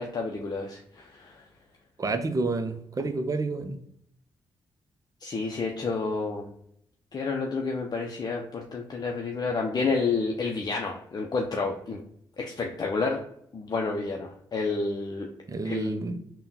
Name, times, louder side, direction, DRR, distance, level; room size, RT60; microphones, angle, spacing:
voice 1, 0.0-1.4 5.2-6.5 7.1-12.0 12.4-13.2 13.5-15.3 15.6-16.2, left 4 dB, 45° left, 1 dB, 0.6 m, -30 dB
voice 2, 2.0-3.8 15.5-16.2, right 3 dB, 35° right, 8 dB, 0.6 m, -29 dB
3.6 x 2.2 x 4.0 m, 0.71 s
supercardioid pair, 55°, 10 cm